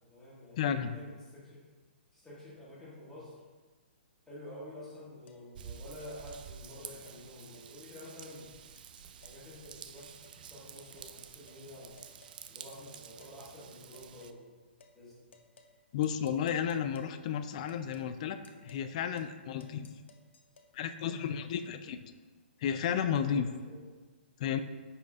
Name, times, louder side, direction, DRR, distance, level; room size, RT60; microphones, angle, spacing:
voice 1, 0.0-1.6 2.1-3.4 4.2-8.5 9.2-12.0 12.5-14.5 14.9-15.3 23.2-23.8, left 1 dB, 5° left, -9 dB, 1.6 m, -49 dB
voice 2, 0.6-0.9 15.9-19.9 20.7-22.0 22.6-23.5 24.4-24.6, left 8 dB, 35° left, 10 dB, 0.4 m, -32 dB
sound 1, 5.3-5.4 6.0-6.4 7.1-7.2 7.5-7.7 8.0-8.5 8.8-9.4 10.0-10.4 11.0-11.1 11.5-11.6 12.0-12.4 12.7-13.4 13.9-14.4 14.8-15.0 15.3-17.2 17.7-18.1 18.4-18.9 19.2-19.4 19.6-20.7, left 4 dB, 90° left, 0.8 m, -60 dB
Raindrop / Vehicle horn car horn honking / Trickle dribble, 5.5-14.3, right 8 dB, 50° right, 0.3 m, -50 dB
10.5 x 4.3 x 2.4 m, 1.3 s
hypercardioid pair, 160°, 6 cm